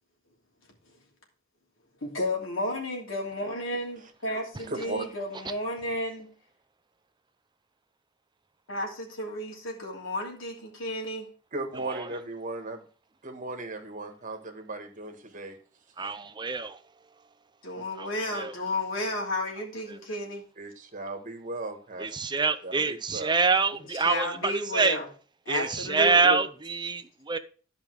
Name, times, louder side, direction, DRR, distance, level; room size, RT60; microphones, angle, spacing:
voice 1, 2.0-6.3 8.7-11.3 17.6-20.5 23.8-25.1 25.4-26.4, left 1 dB, 80° left, 3.0 m, -32 dB
voice 2, 11.5-12.8 13.2-15.6 17.7-17.8 20.6-22.1 22.6-23.4, right 2 dB, 45° right, 1.7 m, -37 dB
voice 3, 16.0-16.8 18.0-18.5 22.0-25.0 25.5-27.4, right 4 dB, 25° right, 0.7 m, -26 dB
11.5 x 5.2 x 4.7 m
head